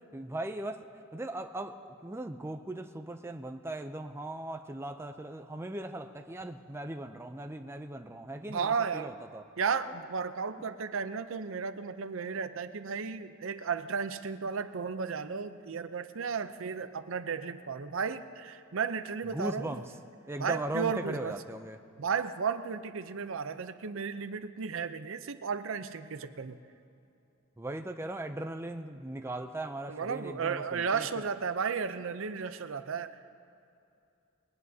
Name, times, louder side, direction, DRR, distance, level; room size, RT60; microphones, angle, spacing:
voice 1, 0.1-0.8 1.1-9.4 19.3-19.8 20.3-21.8 27.6-31.1, right 1 dB, 10° right, 6 dB, 0.4 m, -38 dB
voice 2, 8.5-9.1 9.6-19.8 20.4-21.4 22.0-26.6 29.9-33.2, right 6 dB, 65° right, 11 dB, 0.6 m, -34 dB
21.0 x 18.5 x 2.8 m, 2.7 s
head